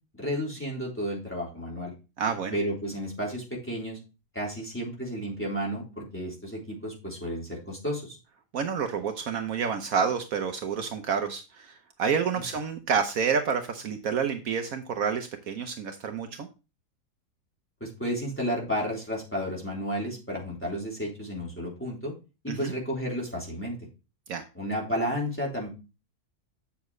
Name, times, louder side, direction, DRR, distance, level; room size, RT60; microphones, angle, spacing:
voice 1, 0.2-1.9 2.5-4.0 4.3-8.2 17.8-22.1 22.4-23.8 24.6-25.7, equal, 10° left, -4 dB, 3.5 m, -32 dB
voice 2, 2.2-2.6 8.5-16.5 22.5-22.7 24.3-24.4, right 6 dB, 70° right, 6 dB, 1.2 m, -29 dB
8.1 x 7.1 x 3.1 m, 0.30 s
omnidirectional pair, 1.6 m